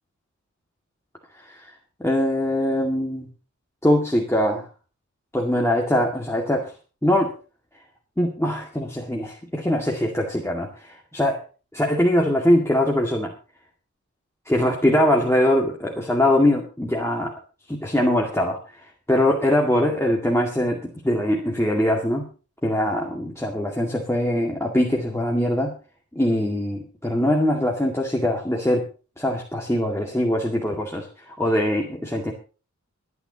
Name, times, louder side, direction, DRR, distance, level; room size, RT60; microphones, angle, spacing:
voice 1, 2.0-3.3 3.8-4.7 5.3-6.7 7.0-7.3 8.2-11.4 11.7-13.3 14.5-17.3 17.7-18.6 19.1-22.3 22.6-25.7 26.1-28.8 29.2-32.3, left 1 dB, 10° left, 0 dB, 2.1 m, -22 dB
26.5 x 9.6 x 2.9 m, 0.36 s
wide cardioid pair, 85°, 30 cm